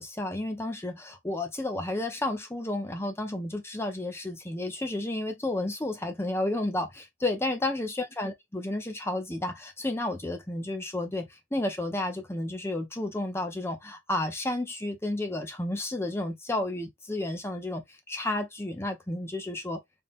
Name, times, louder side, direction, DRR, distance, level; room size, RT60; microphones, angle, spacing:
voice 1, 0.0-17.8 18.1-19.8, left 1 dB, 15° left, 0.8 m, -32 dB
3.6 x 2.3 x 4.1 m
head